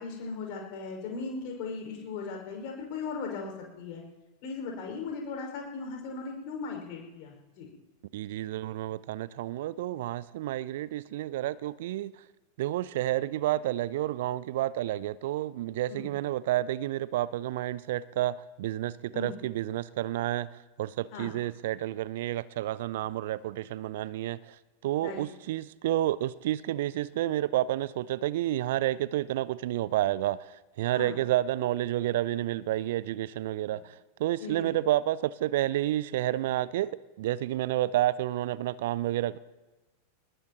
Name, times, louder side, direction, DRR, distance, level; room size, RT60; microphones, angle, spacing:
voice 1, 0.0-4.0 4.4-7.7 15.9-16.1 19.1-19.3 21.1-21.3 25.0-25.2 30.9-31.1 34.4-34.7, left 4 dB, 45° left, 5.9 m, -38 dB
voice 2, 8.1-12.1 12.6-24.6 24.8-39.4, right 14 dB, 55° right, 0.4 m, -30 dB
21.5 x 20.0 x 3.1 m
figure-of-eight pair, 90°, 0 cm